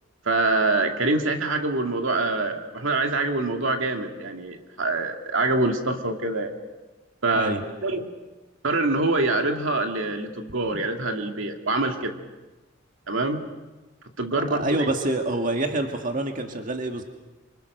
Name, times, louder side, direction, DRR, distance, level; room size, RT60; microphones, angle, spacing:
voice 1, 0.3-6.5 7.2-7.5 7.8-8.1 8.6-12.1 13.1-13.4 14.2-14.7, right 2 dB, 70° right, 4 dB, 2.3 m, -25 dB
voice 2, 14.3-17.0, right 2 dB, 40° right, 4 dB, 1.9 m, -27 dB
26.0 x 25.5 x 6.6 m, 1.2 s
head